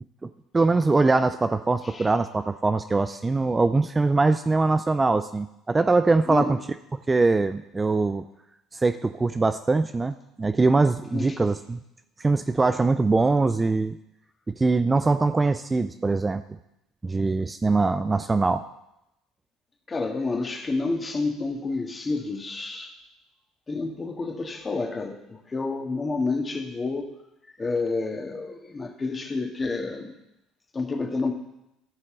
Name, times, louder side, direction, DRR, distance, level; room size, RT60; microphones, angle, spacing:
voice 1, 0.5-6.6 7.1-8.2 8.7-11.8 12.2-14.0 14.5-16.4 17.0-18.6, right 3 dB, 20° right, 11 dB, 0.4 m, -22 dB
voice 2, 11.1-11.5 19.9-22.9 23.7-27.1 27.6-30.1 30.7-31.3, left 3 dB, 30° left, 4 dB, 1.7 m, -29 dB
15.0 x 6.4 x 3.8 m, 0.86 s
hypercardioid pair, 65°, 0 cm